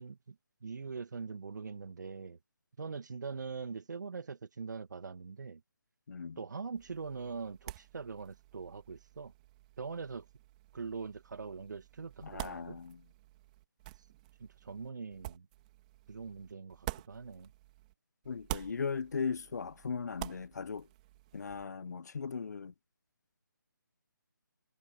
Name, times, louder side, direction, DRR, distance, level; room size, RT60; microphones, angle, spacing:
voice 1, 0.0-2.4 2.8-5.6 6.4-9.3 9.8-10.3 10.7-12.8 14.4-15.5 16.1-17.5, right 5 dB, 60° right, 1.6 m, -42 dB
sound 1, 6.8-17.9 18.2-21.7, right 17 dB, 20° right, 2.6 m, -48 dB
voice 2, 12.2-13.0 18.3-20.9 21.3-22.7, left 5 dB, 55° left, 0.9 m, -38 dB
figure-of-eight pair, 160°, 11 cm